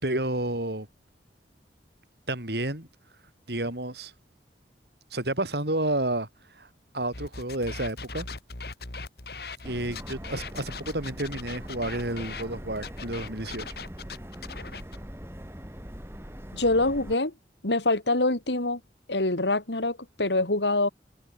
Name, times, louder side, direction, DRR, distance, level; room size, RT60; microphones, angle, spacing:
voice 1, 0.0-0.9 2.3-2.9 3.5-4.1 5.1-6.3 6.5-6.7 6.9-8.3 9.6-13.7, right 1 dB, 70° right, 4.9 m, -30 dB
sound 1, 7.1-12.4 12.8-15.0, left 4 dB, 60° left, 3.0 m, -40 dB
Subway metro underground, 9.6-17.1, equal, 15° right, 3.7 m, -42 dB
voice 2, 16.5-17.3 17.6-18.8 19.1-20.9, left 2 dB, 85° left, 3.2 m, -25 dB
head